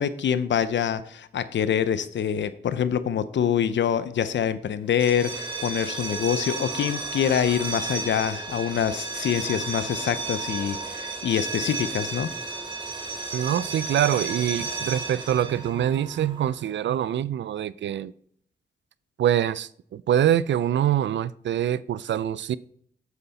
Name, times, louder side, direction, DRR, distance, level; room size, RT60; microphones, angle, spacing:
voice 1, 0.0-12.3, left 8 dB, 85° left, 0.6 m, -25 dB
sound 1, 4.9-16.6, right 4 dB, 25° right, 2.5 m, -33 dB
voice 2, 13.3-18.1 19.2-22.6, right 10 dB, 85° right, 0.4 m, -24 dB
8.1 x 7.9 x 4.1 m
cardioid pair, 50°, 18 cm